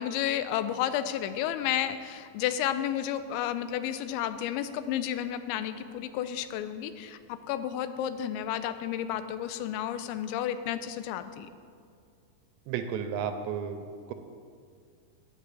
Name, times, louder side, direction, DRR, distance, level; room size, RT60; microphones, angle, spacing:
voice 1, 0.0-11.5, left 10 dB, 90° left, 11 dB, 2.9 m, -32 dB
voice 2, 12.7-14.1, right 7 dB, 85° right, 7 dB, 2.8 m, -33 dB
10.0 x 6.0 x 8.2 m, 2.2 s
omnidirectional pair, 5.1 m